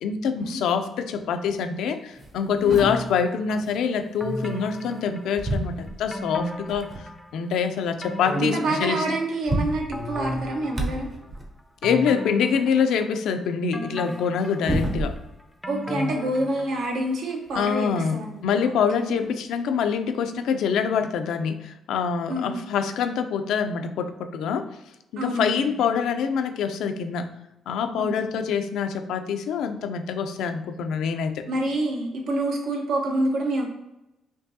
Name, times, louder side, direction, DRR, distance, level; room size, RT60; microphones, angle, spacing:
voice 1, 0.0-9.1 11.8-15.2 17.5-24.7 25.1-27.3 27.7-31.4, left 6 dB, 80° left, 7 dB, 0.4 m, -25 dB
sound 1, 1.6-1.7 2.1-5.0 5.4-7.1 7.6-7.7 8.0-8.1 8.9-9.0 9.2-11.6 14.0-15.5 15.9-18.1 19.2-19.3 20.3-20.4, right 1 dB, 35° right, 0.8 m, -33 dB
sound 2, 2.8-3.6 4.2-5.6 6.1-7.4 7.8-9.5 9.9-11.3 11.8-13.3 13.7-17.0 17.3-17.4, equal, 5° left, 0.4 m, -35 dB
voice 2, 8.3-11.1 15.7-19.1 22.3-22.6 25.2-25.8 28.0-28.3 31.5-33.6, right 1 dB, 75° right, 1 dB, 0.9 m, -27 dB
4.5 x 2.7 x 2.7 m, 0.93 s
cardioid pair, 90°, 0 cm